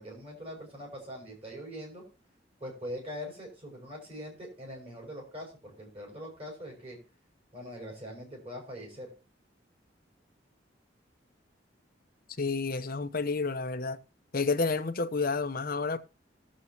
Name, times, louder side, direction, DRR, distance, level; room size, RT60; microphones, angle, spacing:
voice 1, 0.0-2.0 2.6-7.0 7.5-9.1, equal, 35° right, 5.4 m, -42 dB
voice 2, 12.4-14.0 14.3-16.0, left 4 dB, 50° left, 0.8 m, -30 dB
20.0 x 7.5 x 2.8 m
head